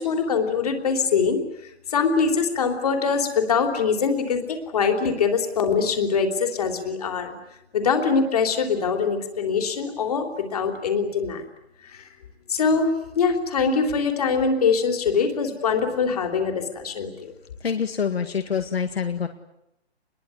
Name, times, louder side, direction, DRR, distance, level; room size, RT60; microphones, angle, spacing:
voice 1, 0.0-7.3 7.7-11.4 11.8-12.1 12.5-17.3, left 5 dB, 35° left, 5 dB, 3.5 m, -23 dB
voice 2, 17.6-19.3, left 6 dB, 65° left, 7 dB, 2.1 m, -26 dB
26.5 x 21.5 x 9.7 m, 0.83 s
hypercardioid pair, 170°, 32 cm